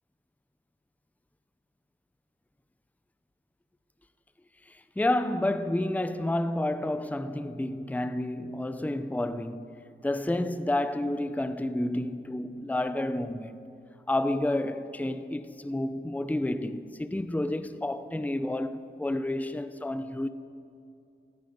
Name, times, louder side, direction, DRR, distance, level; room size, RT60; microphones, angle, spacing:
voice 1, 4.7-9.8 10.0-13.6 14.1-20.3, left 1 dB, 10° left, 0.6 m, -30 dB
17.0 x 16.0 x 5.3 m
wide cardioid pair, 75°, 19 cm